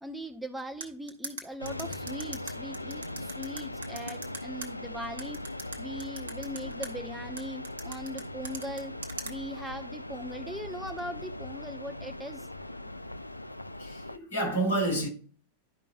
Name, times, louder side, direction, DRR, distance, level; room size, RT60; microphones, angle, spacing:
voice 1, 0.0-5.4 5.8-8.9 9.2-12.5, equal, 5° right, 1.0 m, -40 dB
sound 1, 0.8-4.7 5.2-6.9 7.4-9.3, right 4 dB, 70° right, 1.0 m, -39 dB
sound 2, 1.6-14.2, left 1 dB, 85° left, 0.3 m, -40 dB
voice 2, 13.8-15.1, right 2 dB, 70° left, 2.3 m, -29 dB
11.5 x 5.1 x 2.3 m
figure-of-eight pair, 90°, 0 cm